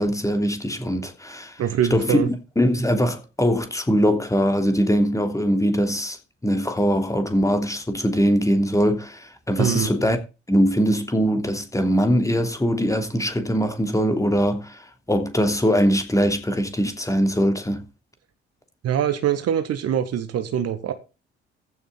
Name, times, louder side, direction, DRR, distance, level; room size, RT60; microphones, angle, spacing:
voice 1, 0.0-1.6 1.9-10.2 10.5-17.8, equal, 10° left, 3.0 m, -22 dB
voice 2, 1.6-2.3 9.6-9.9 18.8-20.9, right 9 dB, 50° right, 1.5 m, -23 dB
15.5 x 7.2 x 4.1 m
figure-of-eight pair, 45°, 31 cm